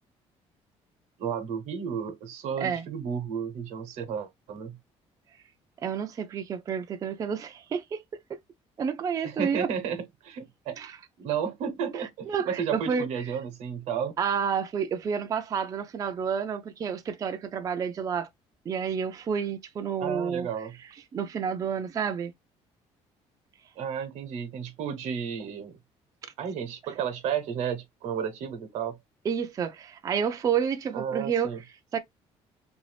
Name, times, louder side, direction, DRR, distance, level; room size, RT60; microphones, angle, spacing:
voice 1, 1.2-4.8 9.2-10.8 11.2-14.1 20.0-20.7 23.8-25.8 26.4-29.0 30.9-31.6, right 7 dB, 80° right, 1.0 m, -32 dB
voice 2, 5.8-8.4 8.8-9.7 10.8-11.0 12.3-13.1 14.2-18.3 18.7-20.5 21.1-22.3 29.2-31.5 31.9-32.0, right 7 dB, 30° right, 0.4 m, -30 dB
3.3 x 2.6 x 3.2 m
cardioid pair, 140°, 12 cm